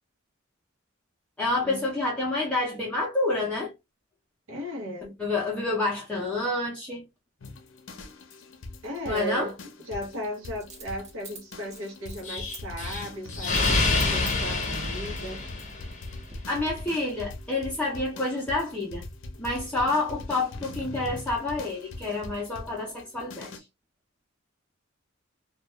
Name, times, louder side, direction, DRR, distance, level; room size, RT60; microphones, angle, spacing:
voice 1, 1.4-3.7 5.2-7.0 9.1-9.5 16.5-19.0 19.4-23.6, left 2 dB, 5° left, 0.5 m, -28 dB
voice 2, 4.5-5.2 8.8-9.5 9.8-15.4, equal, 80° right, 0.8 m, -36 dB
sound 1, 7.4-23.6, left 2 dB, 70° left, 0.6 m, -42 dB
Coin (dropping), 7.9-8.1 10.6-12.6 12.9-13.1 13.5-13.7 14.0-14.8 15.4-16.0 16.3-16.4, right 3 dB, 35° right, 0.7 m, -45 dB
Explosion, 12.2-16.1, left 3 dB, 40° left, 0.8 m, -27 dB
2.3 x 2.2 x 2.9 m
head